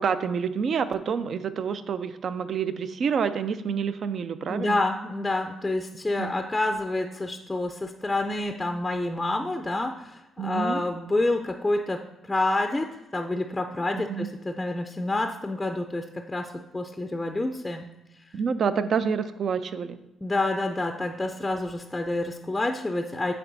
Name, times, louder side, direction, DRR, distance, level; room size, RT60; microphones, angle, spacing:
voice 1, 0.0-4.8 6.2-6.4 10.4-10.8 13.9-14.3 18.3-20.0, right 6 dB, 55° right, 12 dB, 0.4 m, -28 dB
voice 2, 4.5-12.0 12.3-17.9 20.2-23.3, left 2 dB, 15° left, 5 dB, 0.4 m, -28 dB
8.4 x 3.3 x 4.1 m, 0.92 s
cardioid pair, 90°, 0 cm